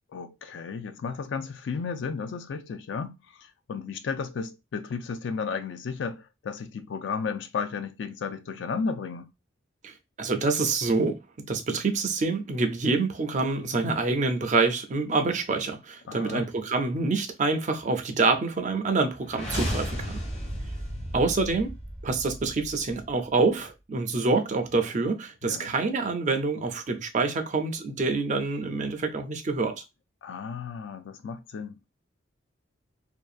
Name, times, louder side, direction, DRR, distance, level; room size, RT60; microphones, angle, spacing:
voice 1, 0.1-9.3 16.1-16.5 25.4-25.7 30.2-31.9, left 5 dB, 65° left, 0.4 m, -34 dB
voice 2, 9.8-11.2 11.5-20.2 21.1-21.7 22.0-29.8, right 3 dB, 40° right, 0.5 m, -26 dB
sound 1, 19.2-23.2, equal, 35° left, 0.9 m, -34 dB
2.7 x 2.3 x 2.4 m
head